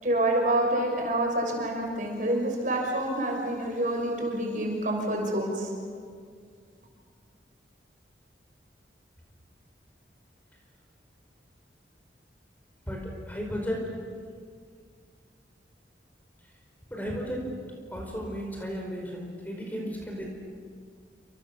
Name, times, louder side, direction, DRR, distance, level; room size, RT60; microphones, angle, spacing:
voice 1, 0.0-5.7, right 1 dB, 45° right, 1 dB, 5.9 m, -27 dB
voice 2, 13.3-13.8 16.9-17.4 17.9-20.3, equal, 10° left, 0 dB, 4.9 m, -34 dB
29.5 x 27.5 x 7.2 m, 2.1 s
head